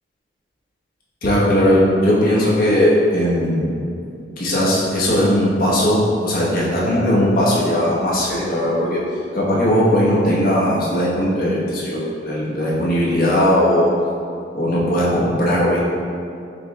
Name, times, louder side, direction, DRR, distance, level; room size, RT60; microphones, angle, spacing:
voice 1, 1.2-3.7 4.4-9.0 9.3-13.9 14.5-15.8, equal, 55° left, -6 dB, 1.0 m, -18 dB
5.1 x 2.3 x 4.1 m, 2.5 s
head